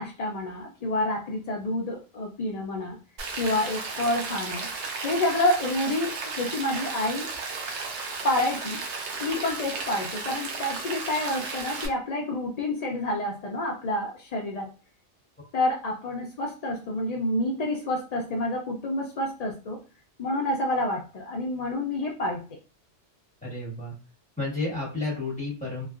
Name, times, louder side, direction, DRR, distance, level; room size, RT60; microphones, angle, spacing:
voice 1, 0.0-3.0 3.4-4.7 5.0-7.3 8.2-8.8 9.2-14.7 15.5-19.8 20.2-22.4, left 1 dB, 70° left, 0 dB, 0.3 m, -28 dB
Rain, 3.2-11.9, right 4 dB, 70° right, 1.0 m, -34 dB
voice 2, 23.4-23.9 24.4-25.9, left 2 dB, 5° left, -5 dB, 1.4 m, -31 dB
3.0 x 2.4 x 2.4 m, 0.34 s
omnidirectional pair, 1.2 m